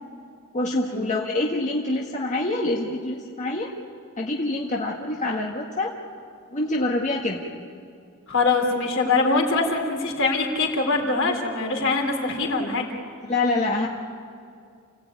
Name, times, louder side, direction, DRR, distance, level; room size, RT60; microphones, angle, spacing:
voice 1, 0.5-3.7 4.2-5.9 6.5-7.4 13.3-13.9, left 2 dB, 35° left, -1 dB, 1.6 m, -26 dB
voice 2, 8.3-12.9, left 3 dB, 65° left, 1 dB, 3.9 m, -23 dB
29.0 x 16.0 x 9.4 m, 2.3 s
head